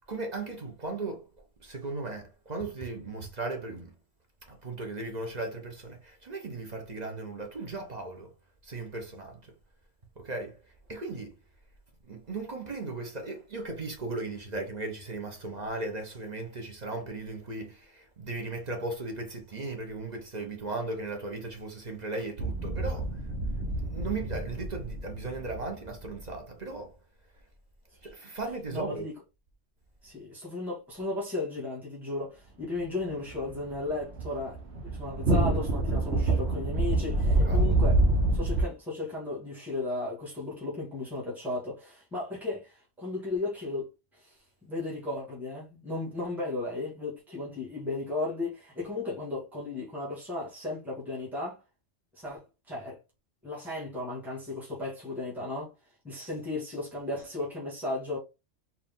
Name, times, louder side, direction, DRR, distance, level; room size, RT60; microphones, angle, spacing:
voice 1, 0.1-1.2 1.6-3.9 4.5-8.3 8.6-9.4 10.2-10.6 10.9-11.3 12.1-23.1 23.8-26.9 28.0-29.1 37.4-37.7, right 3 dB, 40° right, 1.0 m, -37 dB
sound 1, 22.4-26.3 33.2-38.6, right 2 dB, 65° right, 1.3 m, -27 dB
voice 2, 28.7-29.1 30.0-38.0 38.3-43.9 44.2-44.3 44.6-51.6 52.2-53.0 53.4-55.7 56.0-58.2, left 2 dB, ahead, 1.9 m, -35 dB
4.7 x 2.7 x 3.7 m
omnidirectional pair, 1.2 m